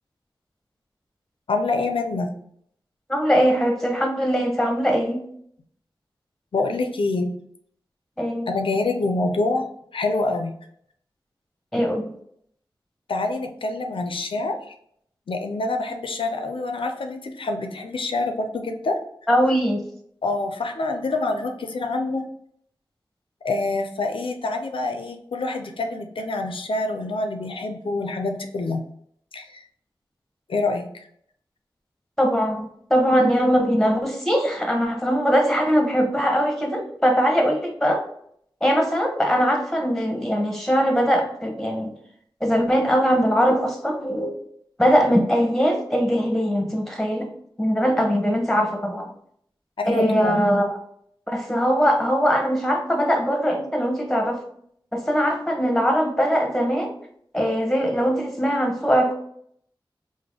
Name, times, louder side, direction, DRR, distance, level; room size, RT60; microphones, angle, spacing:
voice 1, 1.5-2.3 6.5-7.3 8.5-9.7 9.9-10.5 13.1-14.7 15.3-19.0 20.2-22.2 23.4-28.8 29.3-29.6 30.5-31.1 49.8-50.4, left 2 dB, 80° left, 5 dB, 0.4 m, -26 dB
voice 2, 3.1-5.2 8.2-8.5 11.7-12.1 19.3-19.8 32.2-38.0 38.6-41.9 42.4-44.3 44.8-47.3 47.6-49.1 49.9-50.7 51.3-54.4 54.9-56.9 57.3-59.1, equal, 5° left, 3 dB, 0.9 m, -21 dB
3.4 x 2.1 x 3.6 m, 0.67 s
cardioid pair, 45°, 9 cm